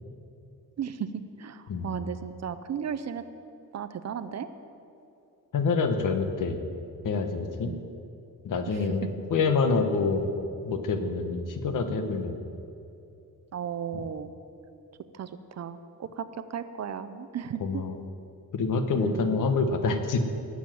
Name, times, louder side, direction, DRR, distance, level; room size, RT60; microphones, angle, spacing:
voice 1, 0.8-3.2 3.7-4.5 7.6-7.8 8.7-8.8 13.5-14.3 15.1-17.8 18.9-19.4, right 8 dB, 45° right, 12 dB, 0.6 m, -35 dB
voice 2, 5.5-6.6 7.0-7.7 8.4-10.3 10.6-12.4 13.9-14.0 17.6-18.0 18.5-20.4, left 4 dB, 60° left, 7 dB, 1.2 m, -27 dB
18.0 x 7.2 x 7.7 m, 2.7 s
wide cardioid pair, 175°, 36 cm